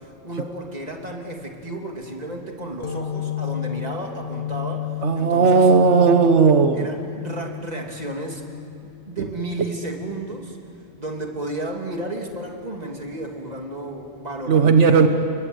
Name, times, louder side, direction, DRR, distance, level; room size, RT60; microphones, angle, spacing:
voice 1, 0.0-5.7 6.7-8.4 8.8-10.6 11.0-15.1, right 1 dB, 35° right, 1 dB, 3.0 m, -33 dB
sound 1, 2.8-10.1, left 12 dB, 70° left, 1.6 m, -33 dB
voice 2, 5.0-6.9 14.5-15.1, right 5 dB, 85° right, 7 dB, 1.5 m, -15 dB
30.0 x 23.0 x 8.1 m, 2.6 s
omnidirectional pair, 1.2 m